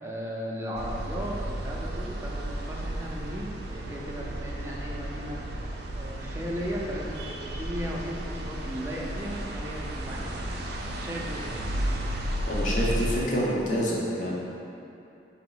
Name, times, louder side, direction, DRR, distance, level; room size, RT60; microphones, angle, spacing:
voice 1, 0.0-5.4 6.0-10.6 11.0-11.6, equal, 15° right, -4 dB, 0.5 m, -36 dB
sound 1, 0.7-13.2, right 1 dB, 65° right, 0.5 m, -33 dB
voice 2, 12.5-14.3, equal, 50° left, -5 dB, 0.9 m, -27 dB
4.9 x 2.8 x 3.9 m, 2.7 s
head